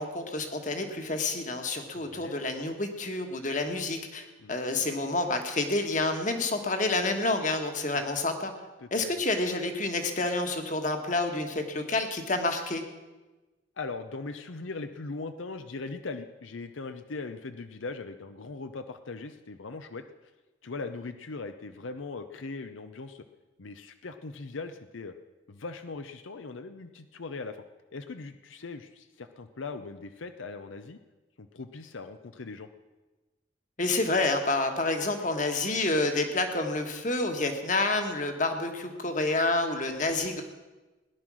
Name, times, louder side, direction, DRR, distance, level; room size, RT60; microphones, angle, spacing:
voice 1, 0.0-8.5 8.9-12.8 33.8-40.4, left 2 dB, 40° left, 6 dB, 1.5 m, -29 dB
voice 2, 2.0-2.4 4.4-4.5 4.8-4.9 7.9-8.0 8.8-9.2 13.8-20.3 20.6-23.2 23.6-25.1 25.5-27.6 27.9-31.0 31.4-32.7, left 3 dB, 85° left, 9 dB, 0.7 m, -40 dB
18.0 x 10.5 x 6.2 m, 1.2 s
head